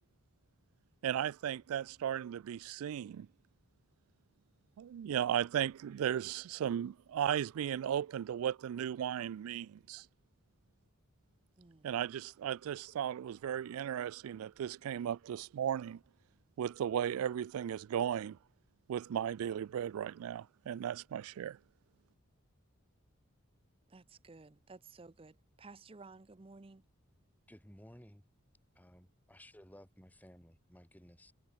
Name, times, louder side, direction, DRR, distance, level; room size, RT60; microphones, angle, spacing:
voice 1, 1.0-3.3 4.8-10.1 11.8-16.0 16.6-18.4 18.9-21.6, right 9 dB, 75° right, 0.3 m, -36 dB
voice 2, 23.9-26.8, right 3 dB, 25° right, 0.5 m, -55 dB
voice 3, 27.5-28.2 28.7-31.3, equal, 5° left, 1.8 m, -57 dB
head